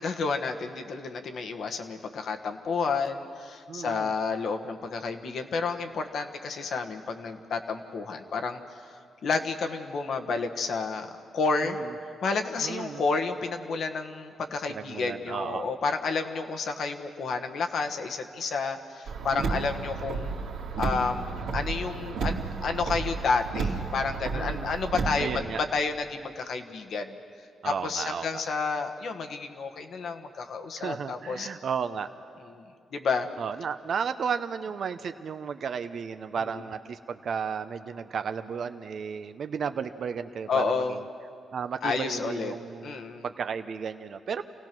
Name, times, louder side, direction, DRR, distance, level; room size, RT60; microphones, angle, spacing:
voice 1, 0.0-8.6 9.2-11.8 12.2-20.3 20.8-25.3 25.6-27.2 27.6-31.5 32.5-32.6 32.9-33.3 36.4-36.6 40.5-41.0 41.8-42.5 42.8-43.2, left 4 dB, 65° left, 5 dB, 1.4 m, -30 dB
voice 2, 3.7-4.1 11.7-11.8 12.6-13.0 14.7-15.7 19.3-19.7 24.3-24.7 25.2-25.6 27.6-28.4 30.8-32.1 33.4-41.0 41.5-44.4, right 6 dB, 60° right, 9 dB, 0.7 m, -34 dB
Car, 19.1-25.4, right 4 dB, 80° right, 2.0 m, -32 dB
27.5 x 17.0 x 6.1 m, 2.3 s
cardioid pair, 80°, 0 cm